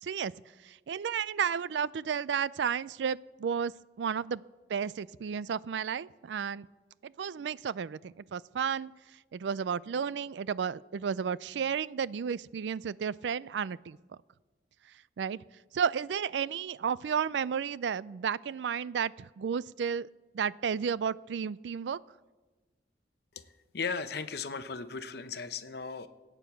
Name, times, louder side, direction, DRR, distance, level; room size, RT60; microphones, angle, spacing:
voice 1, 0.0-0.3 0.6-3.7 4.0-4.4 4.7-6.7 7.0-8.9 9.3-14.0 15.2-15.4 15.7-20.1 20.3-22.0, right 7 dB, 85° right, 20 dB, 0.4 m, -32 dB
voice 2, 23.3-26.1, left 5 dB, 65° left, 11 dB, 0.8 m, -37 dB
17.0 x 9.1 x 6.9 m, 1.2 s
head